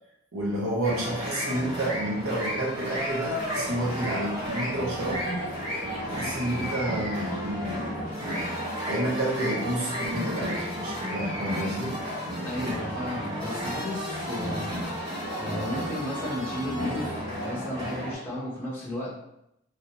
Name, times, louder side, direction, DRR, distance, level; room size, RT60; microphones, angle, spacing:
voice 1, 0.3-5.5 6.0-8.1 8.9-12.0, right 1 dB, 65° right, -4 dB, 0.8 m, -30 dB
sound 1, 0.8-18.1, equal, 50° right, 1.4 m, -32 dB
sound 2, 1.8-9.5, left 2 dB, 70° left, 0.4 m, -47 dB
voice 2, 12.4-14.7 15.4-19.1, left 1 dB, 10° left, -8 dB, 0.8 m, -34 dB
3.2 x 2.7 x 2.9 m, 0.81 s
head